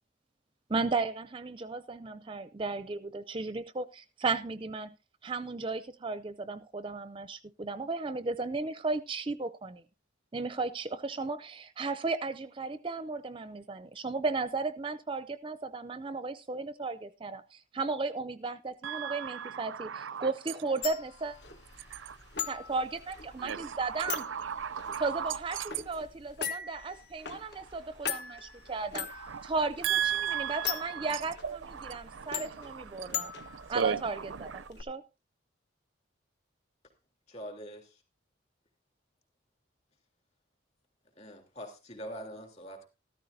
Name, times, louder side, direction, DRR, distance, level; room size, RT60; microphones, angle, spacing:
voice 1, 0.7-4.9 5.2-9.8 10.3-21.3 22.5-24.2 25.0-29.1 29.4-33.3 33.7-35.0, right 3 dB, 25° right, 0.5 m, -35 dB
voice 2, 18.8-20.3 21.9-22.2 23.4-25.7 29.3-29.4 29.8-30.8 31.1-34.0 34.4-34.7, right 8 dB, 80° right, 0.5 m, -35 dB
sound 1, 20.8-34.8, left 7 dB, 60° left, 1.2 m, -41 dB
voice 3, 37.3-38.0 41.2-42.9, equal, 35° left, 3.3 m, -44 dB
14.0 x 13.5 x 2.7 m
head